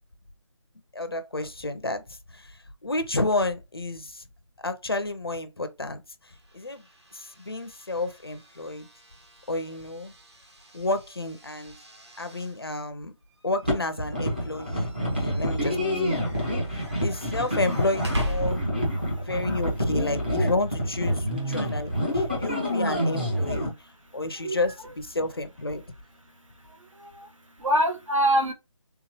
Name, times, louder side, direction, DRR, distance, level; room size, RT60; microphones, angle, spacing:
voice 1, 0.9-4.2 4.6-6.8 7.1-8.9 9.5-10.1 10.7-11.7 12.2-13.1 13.4-15.8 16.1-16.3 17.0-18.6 19.3-23.7 24.1-25.8, left 2 dB, 50° left, 0.5 m, -30 dB
sound 1, 6.3-19.1, left 1 dB, 60° right, 1.4 m, -41 dB
sound 2, 13.6-23.7, equal, 15° right, 0.7 m, -27 dB
voice 2, 19.0-19.3 24.4-24.6 26.6-27.3 27.6-28.5, right 1 dB, 80° right, 1.2 m, -25 dB
3.5 x 3.0 x 2.9 m
figure-of-eight pair, 180°, 16 cm